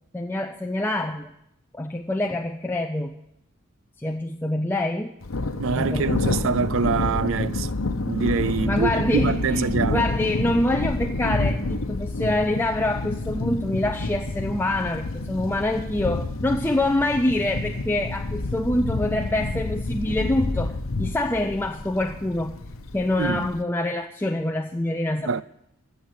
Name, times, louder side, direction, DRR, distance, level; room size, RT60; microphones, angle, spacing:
voice 1, 0.1-1.3 1.7-3.1 4.0-5.1 5.8-6.2 8.7-22.5 22.9-25.4, left 1 dB, 10° left, 0.5 m, -26 dB
Thunder, 5.2-23.6, left 2 dB, 75° left, 1.0 m, -28 dB
voice 2, 5.6-7.7 8.0-10.1 23.2-23.5 25.2-25.4, right 5 dB, 65° right, 0.4 m, -25 dB
16.0 x 6.7 x 9.4 m
head